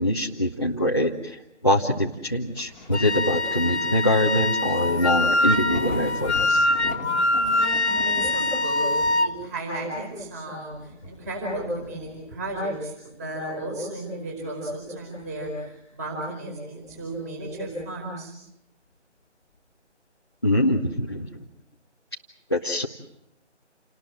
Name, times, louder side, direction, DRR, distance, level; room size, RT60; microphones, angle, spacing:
voice 1, 0.0-1.4 1.6-6.7 20.4-21.3 22.5-22.9, left 1 dB, 20° left, -1 dB, 0.9 m, -24 dB
Thunder, 2.5-13.9 14.3-15.8 16.2-16.3 16.8-18.1 19.5-19.6, left 2 dB, 5° left, 2.1 m, -41 dB
Wind instrument woodwind instrument, 2.9-9.3, left 2 dB, 65° left, 1.5 m, -23 dB
voice 2, 7.3-8.9 9.1-18.3, right 1 dB, 15° right, 0 dB, 4.6 m, -34 dB
29.0 x 20.0 x 7.7 m, 0.84 s
figure-of-eight pair, 165°, 36 cm